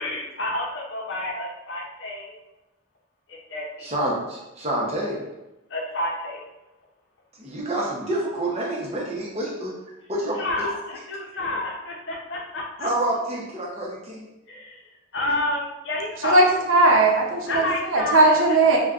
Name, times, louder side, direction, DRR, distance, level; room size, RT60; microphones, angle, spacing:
voice 1, 0.0-2.3 3.3-3.9 5.7-6.4 10.4-12.9 14.5-14.8 15.1-16.4 17.4-18.4, left 1 dB, 60° left, -2 dB, 0.6 m, -29 dB
voice 2, 3.8-5.2 7.4-9.7 10.1-10.7 12.8-14.2, right 1 dB, 30° right, -3 dB, 0.7 m, -28 dB
voice 3, 16.2-18.8, right 2 dB, 75° right, -1 dB, 0.7 m, -18 dB
4.9 x 2.2 x 2.4 m, 0.99 s
head